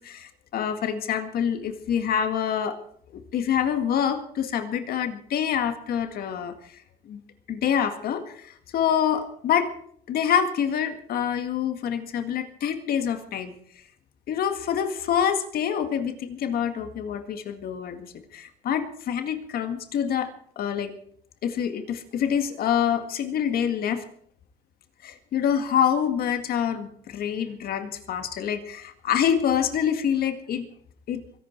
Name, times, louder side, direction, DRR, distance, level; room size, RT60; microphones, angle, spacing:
voice 1, 0.0-2.8 3.1-6.7 7.1-7.2 7.5-9.7 10.1-13.6 14.3-20.9 21.4-24.0 25.0-30.7 31.1-31.2, left 8 dB, 65° left, 8 dB, 1.9 m, -26 dB
23.5 x 11.0 x 4.5 m, 0.62 s
cardioid pair, 110°, 17 cm